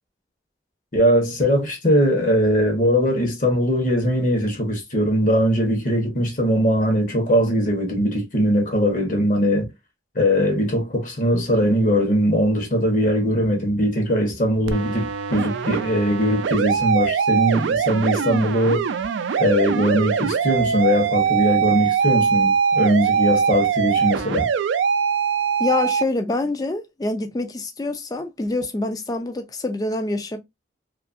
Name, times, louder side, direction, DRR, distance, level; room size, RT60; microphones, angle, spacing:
voice 1, 0.9-9.7 10.1-18.9 19.4-24.5, equal, 45° left, 0.9 m, -20 dB
sound 1, 14.7-26.0, right 7 dB, 80° right, 0.3 m, -22 dB
voice 2, 25.6-30.4, left 2 dB, 20° left, 0.3 m, -26 dB
2.6 x 2.4 x 2.4 m
head